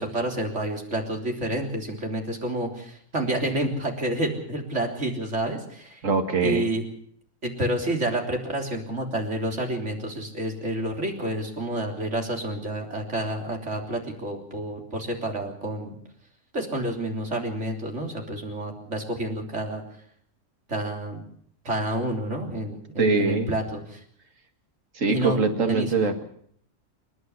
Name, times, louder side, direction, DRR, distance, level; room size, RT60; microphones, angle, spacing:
voice 1, 0.0-6.0 6.4-6.8 7.4-16.0 16.5-19.8 20.7-21.2 21.6-24.0 25.1-25.4 25.7-26.1, right 1 dB, 65° right, 2 dB, 3.9 m, -29 dB
voice 2, 6.0-6.7 23.0-23.5 24.9-26.2, right 4 dB, 85° right, 7 dB, 2.2 m, -23 dB
27.5 x 11.5 x 8.3 m, 0.63 s
omnidirectional pair, 1.3 m